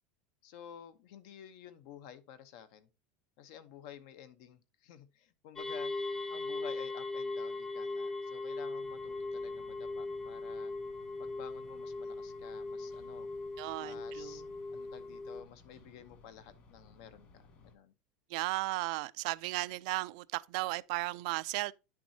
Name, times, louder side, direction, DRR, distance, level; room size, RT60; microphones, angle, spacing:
voice 1, 0.4-2.9 3.4-5.9 6.3-10.7 11.2-13.3 13.8-14.4 14.7-17.9, left 9 dB, 55° left, 0.8 m, -52 dB
sound 1, 5.6-15.4, left 2 dB, 10° left, 0.7 m, -39 dB
sound 2, 8.8-17.8, left 3 dB, 40° left, 1.9 m, -60 dB
voice 2, 13.6-14.5 18.3-21.7, right 22 dB, 60° right, 0.3 m, -35 dB
9.9 x 6.0 x 2.7 m
supercardioid pair, 170°, 4 cm